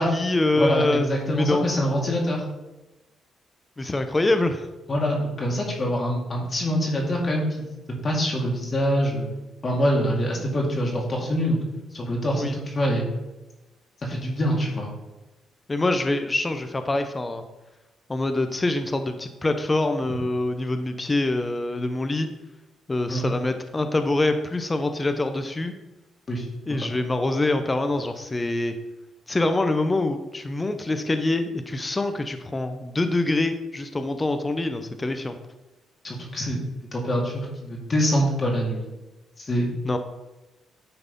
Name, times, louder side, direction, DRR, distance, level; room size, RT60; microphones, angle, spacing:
voice 1, 0.0-1.6 3.8-4.6 12.4-12.6 15.7-17.4 18.1-22.3 22.9-25.7 26.7-28.7 29.3-35.4 39.8-40.0, left 2 dB, 20° left, 8 dB, 0.7 m, -25 dB
voice 2, 0.5-2.4 4.9-7.6 8.0-9.3 9.6-11.6 11.9-13.0 14.0-14.9 23.1-23.2 26.3-26.9 36.0-36.6 36.9-38.9 39.4-39.7, equal, 35° left, -2 dB, 2.0 m, -25 dB
9.6 x 4.0 x 5.3 m, 1.0 s
cardioid pair, 90°, 0 cm